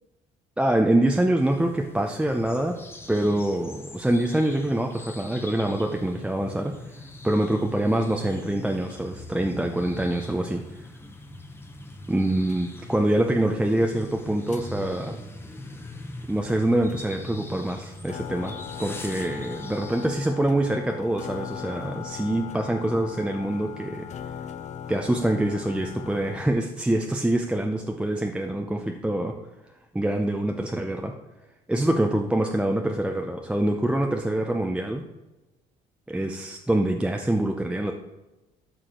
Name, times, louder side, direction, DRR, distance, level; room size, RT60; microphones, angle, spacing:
voice 1, 0.6-2.8 3.1-6.8 7.2-10.8 12.1-15.2 16.3-24.1 24.9-29.4 29.9-31.1 31.7-35.0 36.1-37.9, right 1 dB, 5° right, 3 dB, 0.6 m, -25 dB
sound 1, 1.4-20.1, left 2 dB, 15° left, 1.0 m, -42 dB
sound 2, 12.5-12.6 14.5-14.6 16.5-16.6 16.9-17.0 17.5-17.6 17.9-26.4, left 9 dB, 45° left, 0.8 m, -39 dB
13.0 x 4.8 x 3.8 m, 1.0 s
cardioid pair, 110°, 17 cm